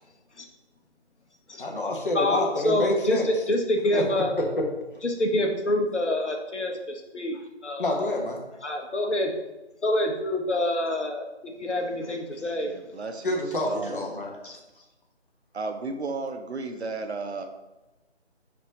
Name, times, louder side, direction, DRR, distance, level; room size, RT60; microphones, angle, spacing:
voice 1, 1.6-3.3 3.9-4.0 7.8-8.4 13.2-14.6, left 1 dB, 50° left, 0 dB, 1.0 m, -28 dB
voice 2, 2.1-4.3 5.0-8.0 8.6-9.3 9.8-12.7 14.4-14.6, left 1 dB, 80° left, 2 dB, 0.9 m, -26 dB
voice 3, 12.6-14.1 15.5-17.4, right 3 dB, 70° right, 6 dB, 0.6 m, -34 dB
4.4 x 2.7 x 3.9 m, 1.0 s
figure-of-eight pair, 155°, 34 cm